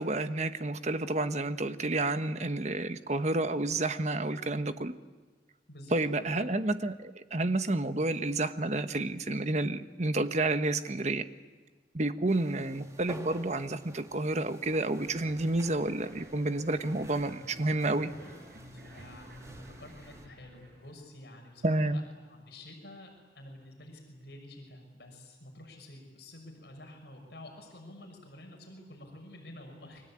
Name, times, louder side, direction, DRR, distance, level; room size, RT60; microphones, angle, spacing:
voice 1, 0.0-4.9 5.9-11.2 11.9-18.1 21.6-22.0, right 2 dB, 40° right, 10 dB, 1.2 m, -30 dB
voice 2, 5.7-6.5 18.1-18.3 18.7-22.0 22.3-30.1, left 1 dB, 70° left, 2 dB, 6.4 m, -49 dB
sound 1, 12.3-20.3, right 1 dB, 20° right, 1.9 m, -51 dB
sound 2, 14.9-21.0, equal, 60° right, 7.8 m, -51 dB
29.0 x 23.0 x 8.8 m, 1.4 s
head